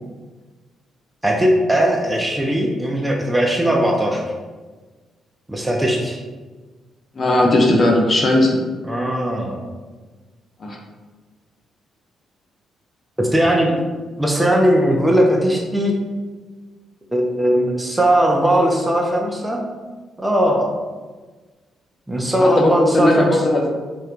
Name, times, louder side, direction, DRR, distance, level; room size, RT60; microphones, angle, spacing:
voice 1, 1.2-4.2 5.5-6.2 8.9-9.6 13.2-13.8 14.2-16.0 17.1-19.6 20.2-20.7 22.1-23.3, equal, 10° right, -1 dB, 0.4 m, -18 dB
voice 2, 7.1-8.6 10.6-10.8 22.4-23.7, left 1 dB, 45° left, -1 dB, 0.6 m, -17 dB
2.9 x 2.2 x 2.4 m, 1.4 s
supercardioid pair, 55°, 0 cm